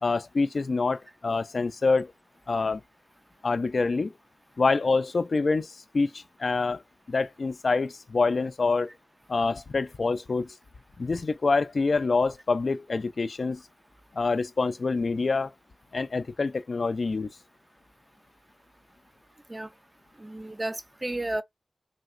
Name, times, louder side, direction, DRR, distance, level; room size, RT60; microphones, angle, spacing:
voice 1, 0.0-2.1 2.5-2.8 3.4-4.1 4.6-6.8 7.1-8.9 9.3-10.5 11.0-13.6 14.1-15.5 15.9-17.3, left 4 dB, 65° left, 0.4 m, -26 dB
voice 2, 20.2-21.4, right 1 dB, 25° right, 0.4 m, -32 dB
3.2 x 2.8 x 2.4 m
wide cardioid pair, 55°, 0 cm